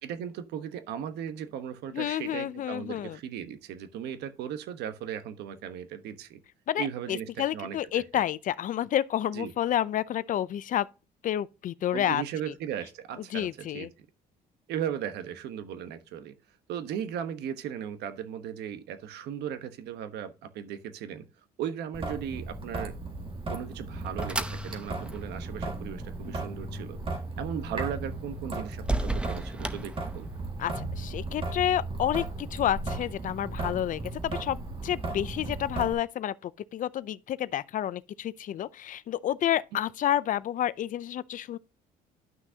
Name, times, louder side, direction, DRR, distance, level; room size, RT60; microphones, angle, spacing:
voice 1, 0.0-6.4 6.8-8.2 9.3-9.5 11.9-13.9 14.7-16.3 16.7-21.3 21.6-22.9 23.5-27.0 27.4-30.3, right 9 dB, 80° right, 1.2 m, -37 dB
voice 2, 1.9-3.2 6.7-10.9 11.2-12.5 13.3-13.9 30.6-34.6 34.8-41.6, left 11 dB, 50° left, 0.5 m, -30 dB
Traffic noise roadway noise / Drip / Trickle dribble, 21.9-35.9, right 2 dB, 30° right, 2.0 m, -36 dB
sound 1, 23.3-30.6, right 2 dB, 5° right, 0.8 m, -37 dB
11.0 x 6.1 x 2.8 m
cardioid pair, 110°, 17 cm